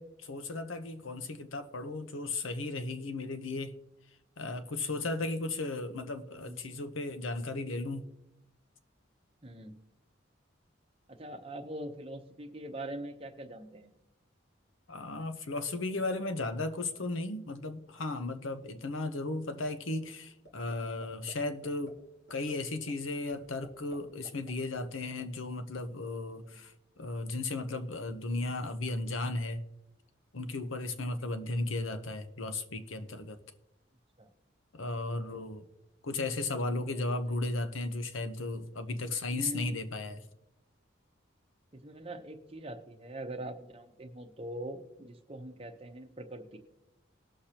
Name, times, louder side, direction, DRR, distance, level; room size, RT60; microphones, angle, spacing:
voice 1, 0.0-3.7 4.4-8.0 14.9-22.0 22.3-29.6 30.3-33.4 34.7-35.7 36.0-40.2, left 2 dB, 80° left, 9 dB, 0.9 m, -35 dB
voice 2, 9.4-9.8 11.1-13.9 26.4-26.6 34.2-34.3 35.1-35.4 39.3-39.8 41.7-46.6, right 1 dB, 30° right, 5 dB, 0.9 m, -43 dB
sound 1, 20.5-20.8 21.0-21.3 21.6-21.9 22.3-22.5 22.9-23.0 23.3-24.0 24.2-25.2, right 1 dB, 65° left, 2.6 m, -51 dB
19.5 x 6.5 x 2.9 m, 0.92 s
head